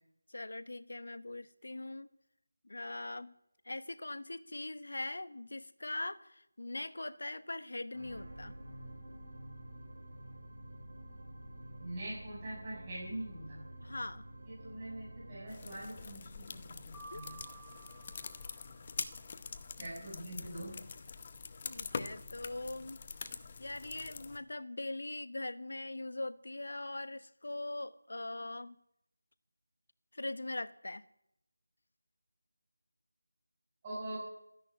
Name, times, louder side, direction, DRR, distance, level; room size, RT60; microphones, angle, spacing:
voice 1, 0.3-2.1 2.6-3.3 3.6-8.5 13.8-14.2 17.1-17.2 21.6-23.0 23.6-28.7 30.1-31.0, left 2 dB, 70° left, 13 dB, 1.1 m, -41 dB
sound 1, 7.9-20.3 20.9-21.0, right 1 dB, 40° right, 5.4 m, -51 dB
voice 2, 11.8-13.6 14.5-17.4 19.8-20.7 33.8-34.2, right 1 dB, 15° right, -8 dB, 7.4 m, -43 dB
sound 2, 15.5-24.4, left 5 dB, 25° left, 0.8 m, -45 dB
Piano, 16.9-19.1, right 4 dB, 5° left, 4.3 m, -54 dB
14.0 x 10.5 x 9.7 m, 0.82 s
figure-of-eight pair, 175°, 0 cm